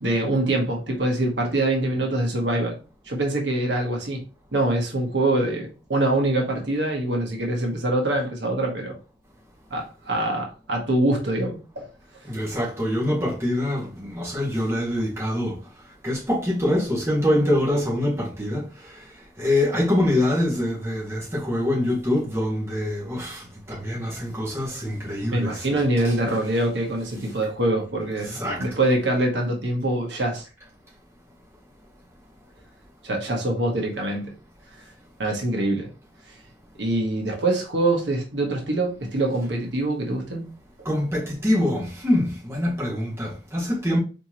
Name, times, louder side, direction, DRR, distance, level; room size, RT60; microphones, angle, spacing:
voice 1, 0.0-2.8 3.0-4.2 4.5-9.0 9.7-11.9 25.3-30.5 33.0-34.3 35.2-35.9 36.8-40.5, right 1 dB, 85° right, 1.3 m, -24 dB
voice 2, 12.2-15.6 16.0-19.0 19.4-26.1 28.2-28.9 40.8-44.0, left 1 dB, 15° right, 1.8 m, -25 dB
4.3 x 3.4 x 2.9 m
head